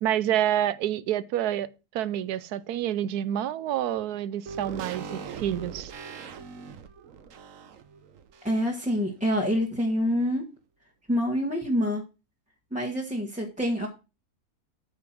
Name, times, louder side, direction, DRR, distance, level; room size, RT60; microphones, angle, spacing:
voice 1, 0.0-5.9, right 11 dB, 80° right, 1.2 m, -28 dB
sound 1, 4.5-8.9 9.2-9.3, right 6 dB, 60° right, 1.2 m, -41 dB
voice 2, 8.4-10.4 11.1-12.0 12.7-13.9, equal, 5° right, 1.4 m, -26 dB
8.6 x 5.8 x 6.1 m
omnidirectional pair, 1.6 m